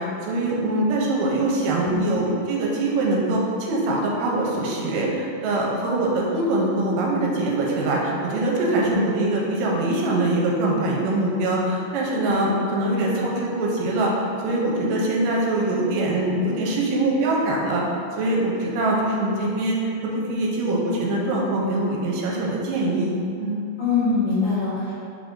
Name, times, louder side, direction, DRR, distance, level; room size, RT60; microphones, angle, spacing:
voice 1, 0.0-14.1 14.4-17.8 18.2-23.1 23.4-23.6, right 2 dB, 85° right, -3 dB, 2.2 m, -23 dB
voice 2, 1.8-2.2 8.8-8.9 12.2-12.3 23.8-24.9, left 4 dB, 70° left, -14 dB, 2.3 m, -24 dB
5.5 x 3.6 x 2.5 m, 2.5 s
omnidirectional pair, 3.9 m